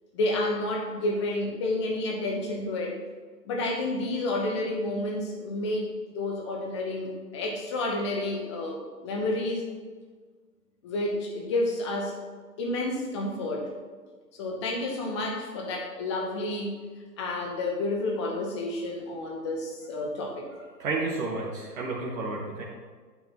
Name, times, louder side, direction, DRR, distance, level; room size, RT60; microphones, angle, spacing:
voice 1, 0.1-3.0 3.4-9.6 10.8-12.2 12.6-13.7 14.3-16.8 17.2-20.5, left 2 dB, 15° left, 1 dB, 0.9 m, -30 dB
voice 2, 20.8-22.6, right 3 dB, 50° right, -4 dB, 1.6 m, -31 dB
9.0 x 9.0 x 3.0 m, 1.5 s
hypercardioid pair, 150°, 50 cm